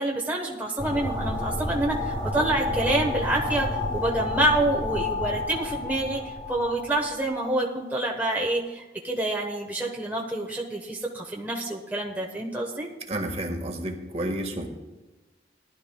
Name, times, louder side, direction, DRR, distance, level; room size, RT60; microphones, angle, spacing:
voice 1, 0.0-12.9, right 1 dB, 10° right, -1 dB, 1.0 m, -27 dB
sound 1, 0.8-7.2, left 2 dB, 5° left, 2.7 m, -30 dB
voice 2, 13.1-14.7, right 1 dB, 35° right, 3 dB, 1.5 m, -30 dB
19.0 x 12.0 x 2.2 m, 1.2 s
head